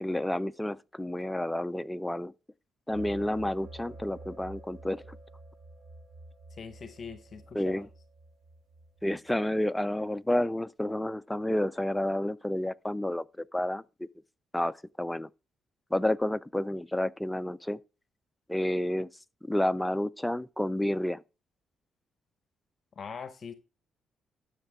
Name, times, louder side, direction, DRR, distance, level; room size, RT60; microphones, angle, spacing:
voice 1, 0.0-2.3 2.9-5.2 7.5-7.9 9.0-14.1 14.5-15.3 15.9-17.8 18.5-19.1 19.4-21.2, left 1 dB, 5° left, 0.4 m, -30 dB
sound 1, 2.9-9.4, right 2 dB, 60° right, 2.3 m, -49 dB
voice 2, 6.5-7.9 23.0-23.5, left 6 dB, 50° left, 0.8 m, -42 dB
12.5 x 6.6 x 3.6 m
cardioid pair, 90°, 0 cm